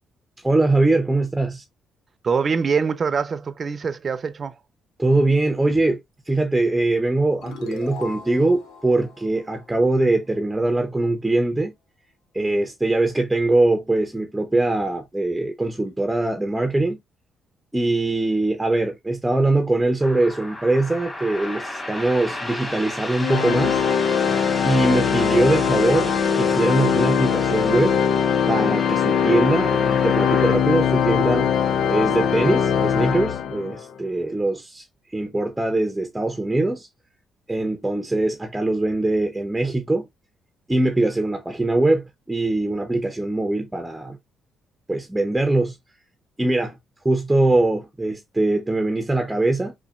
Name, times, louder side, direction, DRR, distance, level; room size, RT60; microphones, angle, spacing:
voice 1, 0.4-1.6 5.0-6.0 6.3-11.7 12.3-17.0 17.7-23.8 24.6-28.0 28.5-34.8 35.1-36.9 37.5-40.1 40.7-44.2 44.9-45.8 46.4-46.8 47.0-49.7, right 2 dB, 10° right, 0.8 m, -22 dB
voice 2, 2.2-4.6, right 5 dB, 40° right, 0.7 m, -24 dB
sound 1, 7.4-10.6, left 4 dB, 90° left, 1.0 m, -40 dB
sound 2, 20.0-30.6, left 1 dB, 20° left, 2.6 m, -34 dB
Organ, 23.2-33.8, left 7 dB, 65° left, 0.6 m, -21 dB
4.8 x 4.2 x 2.4 m
cardioid pair, 90°, 0 cm